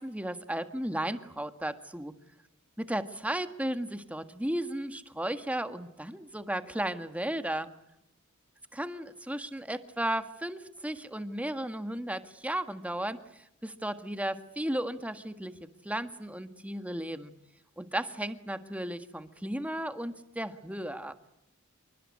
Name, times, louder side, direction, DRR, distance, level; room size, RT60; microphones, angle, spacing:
voice 1, 0.0-2.1 2.8-7.7 8.7-17.3 17.8-21.1, right 1 dB, 5° right, 9 dB, 1.7 m, -35 dB
28.0 x 24.5 x 8.6 m, 0.82 s
head